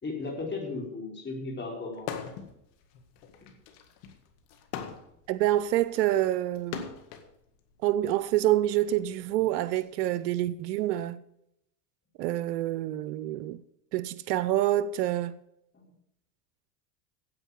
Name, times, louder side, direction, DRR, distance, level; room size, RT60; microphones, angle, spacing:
voice 1, 0.0-2.1 3.4-3.5 15.7-15.8, left 3 dB, 25° left, 4.3 m, -36 dB
sound 1, 2.0-2.5 2.9-7.3 8.2-9.8, left 8 dB, 80° left, 1.9 m, -41 dB
voice 2, 5.3-6.9 7.8-11.2 12.2-13.6 13.9-15.4, right 13 dB, 85° right, 0.7 m, -27 dB
9.8 x 8.2 x 8.3 m
supercardioid pair, 95°, 47 cm